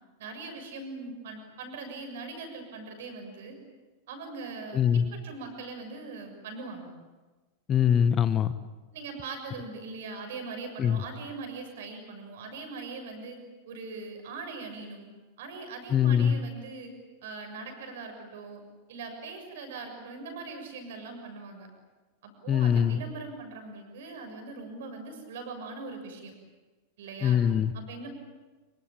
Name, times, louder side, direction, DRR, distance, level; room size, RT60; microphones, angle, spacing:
voice 1, 0.2-3.6 4.1-6.9 8.9-15.1 15.4-16.9 17.2-18.6 18.9-21.7 22.2-26.3 27.0-27.4 27.7-28.2, right 3 dB, 55° right, 5 dB, 6.9 m, -41 dB
voice 2, 4.7-5.0 7.7-8.5 10.8-11.0 15.9-16.3 22.5-23.0 27.2-27.7, left 8 dB, 25° left, 14 dB, 1.2 m, -23 dB
26.5 x 24.5 x 8.8 m, 1.2 s
figure-of-eight pair, 90°, 0 cm